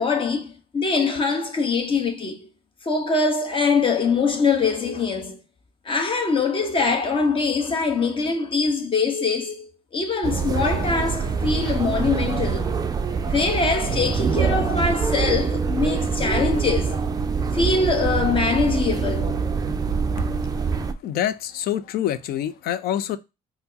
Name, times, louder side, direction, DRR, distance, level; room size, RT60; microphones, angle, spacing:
voice 1, 0.0-2.5 2.8-5.4 5.8-12.8 13.2-17.0 17.5-19.4, left 4 dB, 30° left, 0.9 m, -23 dB
sound 1, 10.2-20.9, right 5 dB, 25° right, 0.4 m, -24 dB
voice 2, 21.0-23.2, left 11 dB, 65° left, 0.4 m, -26 dB
4.3 x 2.0 x 2.6 m
cardioid pair, 110°, 17 cm